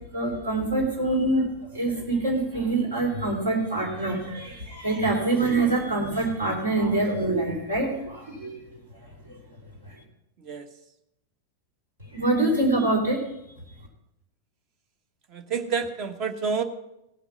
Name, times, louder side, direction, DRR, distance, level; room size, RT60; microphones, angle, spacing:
voice 1, 0.1-8.6 9.2-9.4 9.8-10.0 12.1-13.2, right 2 dB, 70° right, 0 dB, 3.7 m, -25 dB
voice 2, 15.3-16.6, right 5 dB, 40° right, 9 dB, 1.2 m, -29 dB
17.5 x 5.9 x 5.9 m, 0.85 s
figure-of-eight pair, 90°, 0 cm